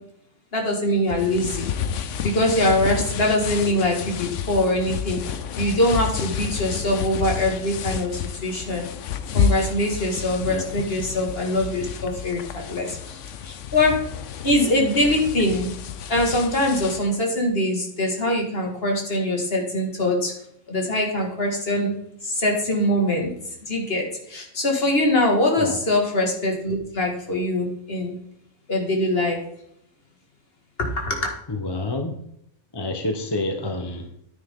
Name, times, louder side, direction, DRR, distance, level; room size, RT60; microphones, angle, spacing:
voice 1, 0.5-1.7 2.2-8.9 9.3-14.0 14.4-15.7 16.1-20.3 20.7-21.9 22.2-23.3 23.6-28.2 28.7-29.4 30.8-31.3, left 1 dB, 45° left, 1 dB, 2.3 m, -23 dB
sound 1, 1.1-17.1, left 8 dB, 65° left, 1.0 m, -30 dB
voice 2, 31.5-32.2 32.7-34.1, left 2 dB, 20° left, 5 dB, 0.9 m, -28 dB
9.6 x 9.5 x 3.8 m, 0.76 s
omnidirectional pair, 1.5 m